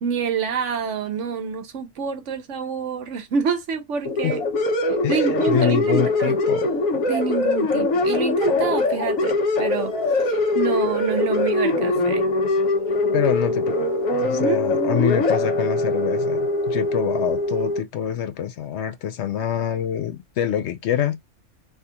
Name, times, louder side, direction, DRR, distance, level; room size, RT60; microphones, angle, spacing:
voice 1, 0.0-4.4 5.1-6.4 7.1-12.2 14.3-14.6, right 6 dB, 70° right, 1.1 m, -27 dB
sound 1, 4.1-17.8, left 2 dB, 90° left, 1.3 m, -22 dB
voice 2, 5.0-6.7 13.1-13.8 14.2-21.1, left 9 dB, 65° left, 0.8 m, -25 dB
3.4 x 2.4 x 2.7 m
omnidirectional pair, 1.3 m